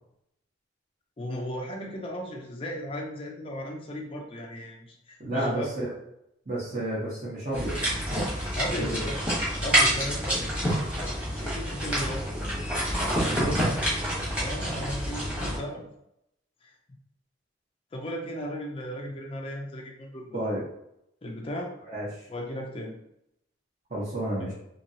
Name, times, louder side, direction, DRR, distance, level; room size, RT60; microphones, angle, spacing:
voice 1, 1.2-5.7 8.6-9.2 9.6-10.5 11.4-12.3 14.3-15.9 16.6-16.7 17.9-20.6 21.2-21.7 22.3-22.9, equal, 30° left, 0 dB, 0.4 m, -36 dB
voice 2, 5.2-5.9 6.5-7.8 8.6-9.1 13.2-13.6 20.3-20.6 21.9-22.3 23.9-24.5, right 1 dB, 40° right, -9 dB, 0.9 m, -31 dB
sound 1, 7.5-15.6, equal, 5° right, 1.1 m, -27 dB
2.9 x 2.8 x 2.7 m, 0.80 s
head